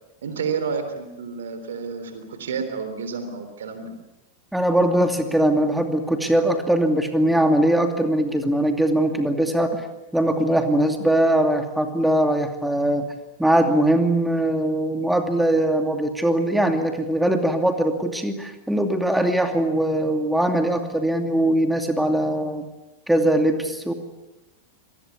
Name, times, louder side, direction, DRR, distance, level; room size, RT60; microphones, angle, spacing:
voice 1, 0.2-3.9, right 5 dB, 65° right, 9 dB, 3.5 m, -30 dB
voice 2, 4.5-9.9 10.1-13.1 13.4-22.6 23.1-23.9, right 1 dB, 5° right, 6 dB, 2.6 m, -21 dB
26.5 x 19.5 x 8.5 m, 0.99 s
figure-of-eight pair, 90°, 0 cm